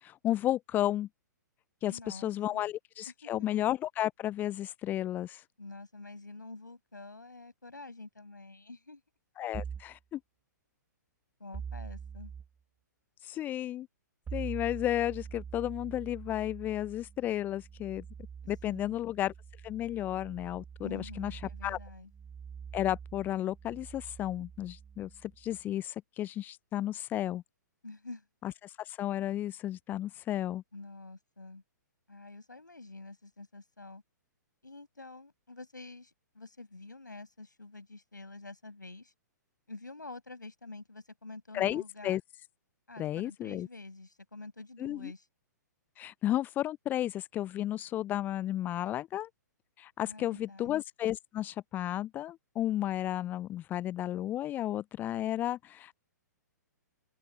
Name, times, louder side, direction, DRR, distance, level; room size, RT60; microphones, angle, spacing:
voice 1, 0.0-1.1 1.8-5.4 9.4-10.2 13.2-13.9 14.3-18.0 18.5-19.3 19.6-21.8 22.7-27.4 28.4-30.6 41.5-42.2 43.0-43.7 44.8-45.1 46.0-49.3 49.8-55.9, left 13 dB, 20° left, 0.4 m, -33 dB
voice 2, 1.8-2.6 3.1-3.3 5.6-9.0 11.4-12.3 18.7-18.9 20.8-22.1 27.8-28.2 30.7-31.6 32.1-34.0 34.6-39.1 39.7-42.2 42.9-45.2 50.0-50.7, left 3 dB, 85° left, 6.7 m, -47 dB
sound 1, 9.5-10.0 11.5-12.5 14.3-25.6, right 7 dB, 10° right, 0.8 m, -45 dB
figure-of-eight pair, 115°, 10 cm